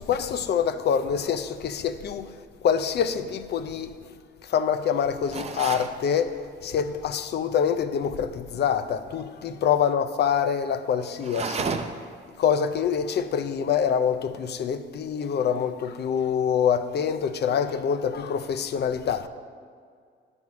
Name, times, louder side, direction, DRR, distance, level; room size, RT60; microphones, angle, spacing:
voice 1, 0.0-2.3 2.6-3.9 4.4-11.7 12.4-19.3, left 7 dB, 55° left, 0.5 m, -25 dB
sound 1, 5.3-6.0 11.2-12.1, right 4 dB, 30° right, 0.5 m, -31 dB
9.5 x 5.4 x 4.7 m
cardioid pair, 90°, 20 cm